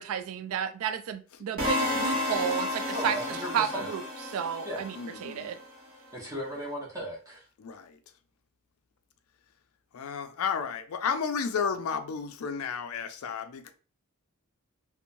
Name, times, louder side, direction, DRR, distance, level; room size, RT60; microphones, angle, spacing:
voice 1, 0.0-3.2 3.5-4.0 4.3-4.9 5.2-5.6, right 8 dB, 70° right, 0.3 m, -32 dB
sound 1, 1.6-5.6, left 1 dB, 45° right, 1.1 m, -32 dB
voice 2, 2.9-3.9 4.6-5.0 6.1-7.5, equal, 15° right, 0.7 m, -36 dB
voice 3, 5.0-5.5 7.6-8.0 9.9-13.7, left 6 dB, 70° left, 0.4 m, -32 dB
3.0 x 2.0 x 2.5 m
head